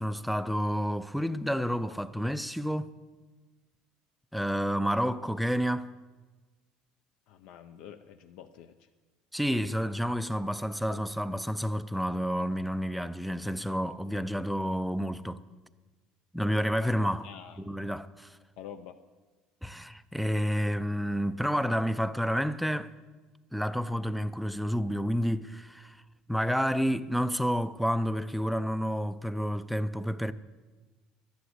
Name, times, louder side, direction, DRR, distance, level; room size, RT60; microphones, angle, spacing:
voice 1, 0.0-2.9 4.3-5.9 9.3-15.4 16.3-17.3 17.7-18.4 19.6-22.9 23.5-26.0 26.3-30.3, equal, ahead, 0.4 m, -30 dB
voice 2, 7.3-8.9 17.2-17.6 18.6-19.0, left 9 dB, 65° left, 0.6 m, -47 dB
12.0 x 10.5 x 8.1 m
cardioid pair, 155°, 2 cm